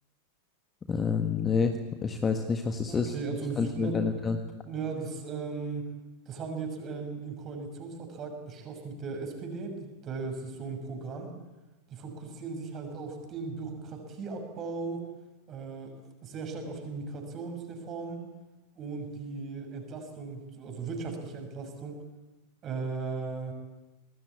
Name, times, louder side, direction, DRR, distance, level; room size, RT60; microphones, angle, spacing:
voice 1, 0.9-1.7 2.0-3.1 3.6-4.4, left 5 dB, 20° left, 6 dB, 1.6 m, -28 dB
voice 2, 2.9-4.0 4.6-5.9 6.3-9.7 10.0-11.3 11.9-15.0 15.5-15.9 16.2-18.2 18.8-22.0 22.6-23.5, right 4 dB, 30° right, 5 dB, 6.2 m, -37 dB
25.5 x 20.0 x 8.7 m, 1.1 s
figure-of-eight pair, 90°, 0 cm